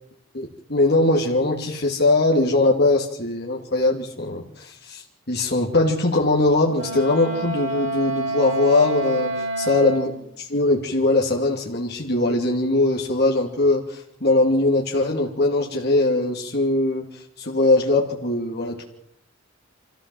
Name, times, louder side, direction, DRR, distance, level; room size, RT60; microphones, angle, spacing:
voice 1, 0.3-9.3 9.6-10.1 10.4-17.1 17.4-18.8, left 2 dB, 50° left, -1 dB, 2.5 m, -21 dB
Wind instrument woodwind instrument, 6.7-10.2, right 2 dB, 70° right, 5.8 m, -28 dB
25.5 x 15.0 x 7.7 m, 0.73 s
head